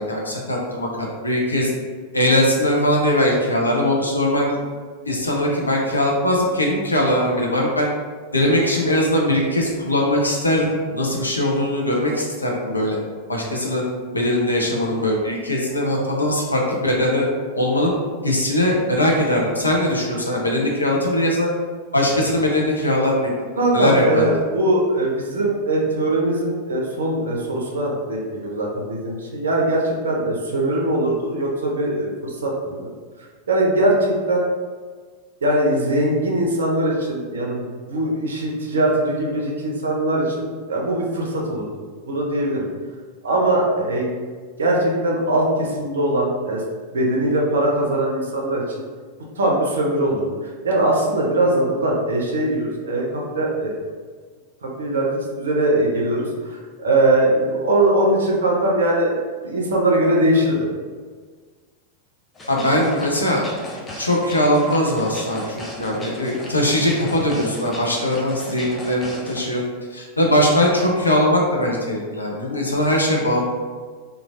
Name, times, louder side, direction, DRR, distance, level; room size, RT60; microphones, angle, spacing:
voice 1, 0.0-1.7 2.1-4.6 5.0-7.9 8.3-13.0 13.3-13.8 14.1-17.3 17.5-17.9 18.2-21.5 21.9-23.3 23.7-24.3 62.5-63.5 64.0-69.6 69.9-73.4, left 1 dB, 80° left, -2 dB, 0.5 m, -20 dB
voice 2, 23.6-32.9 33.5-34.5 35.4-41.6 42.1-42.7 43.2-44.1 44.6-46.6 46.9-48.6 49.4-50.3 50.6-53.7 54.6-59.2 59.4-60.7, right 1 dB, 65° right, -2 dB, 0.5 m, -21 dB
sound 1, 62.3-69.5, left 1 dB, 15° left, 0.5 m, -36 dB
3.1 x 2.4 x 2.4 m, 1.5 s
figure-of-eight pair, 90°, 0 cm